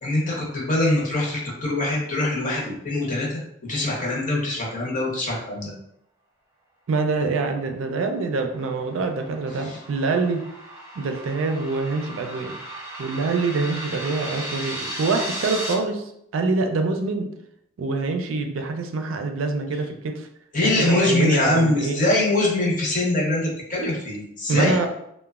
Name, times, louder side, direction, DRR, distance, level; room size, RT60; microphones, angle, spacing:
voice 1, 0.0-3.4 3.7-5.7 9.6-9.8 20.5-24.8, left 1 dB, 40° left, -3 dB, 0.7 m, -23 dB
voice 2, 6.9-10.4 11.0-12.6 13.0-17.3 17.8-20.3 20.6-22.0 24.5-24.9, right 3 dB, 85° right, 5 dB, 0.4 m, -25 dB
sound 1, 8.1-15.7, right 1 dB, 15° right, 0.5 m, -35 dB
3.0 x 2.1 x 2.3 m, 0.76 s
head